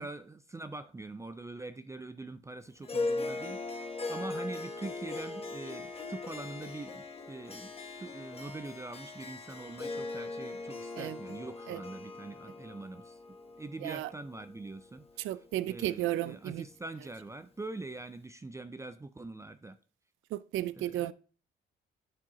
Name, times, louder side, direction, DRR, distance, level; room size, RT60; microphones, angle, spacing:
voice 1, 0.0-7.7 8.0-13.2 13.6-15.4 15.6-19.8 20.7-21.1, right 2 dB, 15° right, 0.4 m, -44 dB
Harp, 2.8-15.4, left 3 dB, 30° left, 1.2 m, -39 dB
voice 2, 15.2-16.6 20.3-21.1, right 14 dB, 80° right, 0.4 m, -34 dB
11.0 x 4.7 x 3.0 m
cardioid pair, 90°, 20 cm